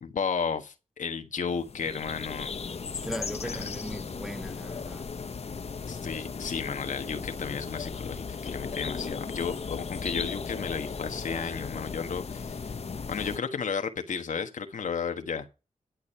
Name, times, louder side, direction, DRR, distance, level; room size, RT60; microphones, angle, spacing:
voice 1, 0.0-2.5 3.4-3.7 5.9-12.7 13.1-15.5, left 6 dB, 80° left, 1.4 m, -33 dB
sound 1, 1.5-13.4, left 5 dB, 55° left, 1.0 m, -36 dB
voice 2, 3.0-5.1, equal, 5° right, 0.6 m, -38 dB
12.0 x 6.4 x 5.6 m
cardioid pair, 70°, 13 cm